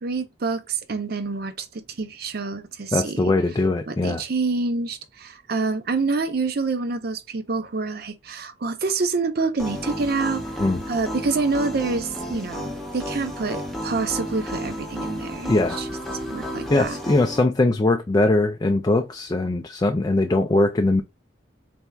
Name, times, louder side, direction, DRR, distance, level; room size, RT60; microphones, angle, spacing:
voice 1, 0.0-3.2 3.9-17.0, right 4 dB, 55° right, 0.6 m, -27 dB
voice 2, 2.9-4.2 10.6-10.8 15.5-15.8 16.7-21.0, left 2 dB, 20° left, 0.3 m, -21 dB
sound 1, 9.6-17.4, equal, ahead, 0.7 m, -32 dB
4.3 x 3.4 x 2.2 m
head